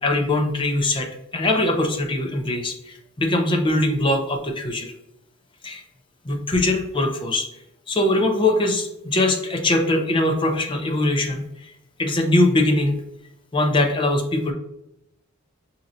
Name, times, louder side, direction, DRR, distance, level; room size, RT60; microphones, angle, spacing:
voice 1, 0.0-4.9 5.6-5.8 6.2-7.5 7.9-11.7 12.0-13.0 13.5-14.5, left 2 dB, 20° left, 2 dB, 0.6 m, -22 dB
6.1 x 2.8 x 2.5 m, 0.83 s
head